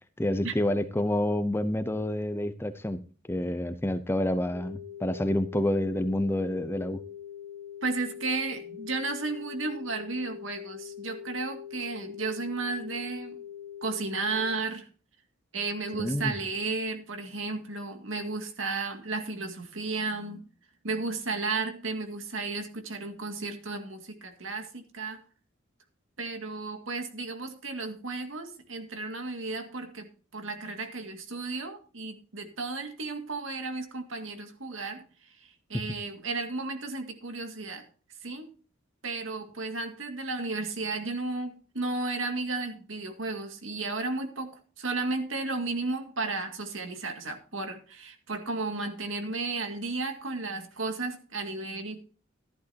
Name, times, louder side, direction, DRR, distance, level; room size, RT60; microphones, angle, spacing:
voice 1, 0.2-3.0 3.3-7.0 15.9-16.3, left 1 dB, 10° left, 0.6 m, -28 dB
sound 1, 4.5-14.5, left 9 dB, 50° right, 7.6 m, -43 dB
voice 2, 7.8-13.4 13.8-14.9 15.5-20.5 20.8-25.2 26.2-37.8 38.2-38.5 39.0-52.0, right 3 dB, 80° right, 2.1 m, -34 dB
13.5 x 11.5 x 2.9 m
head